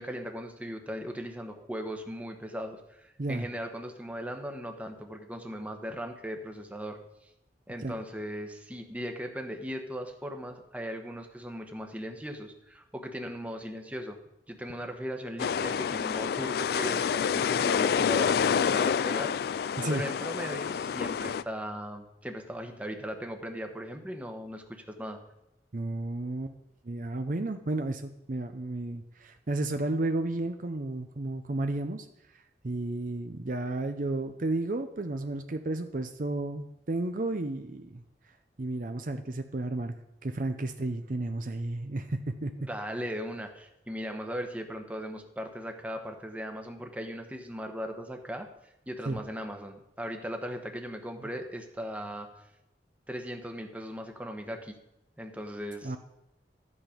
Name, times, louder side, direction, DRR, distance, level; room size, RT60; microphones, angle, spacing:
voice 1, 0.0-7.0 7.7-14.2 14.5-19.3 19.6-25.2 42.6-48.5 48.9-52.3 53.1-54.8 55.2-56.0, equal, 10° right, 4 dB, 1.1 m, -38 dB
sound 1, 15.4-21.4, left 7 dB, 60° left, 0.3 m, -28 dB
voice 2, 25.7-26.5 26.8-32.1 32.6-38.0 38.6-40.0 40.2-42.5 49.1-49.2 55.8-56.0, right 2 dB, 50° right, 7 dB, 0.6 m, -32 dB
13.0 x 8.6 x 5.1 m, 0.86 s
head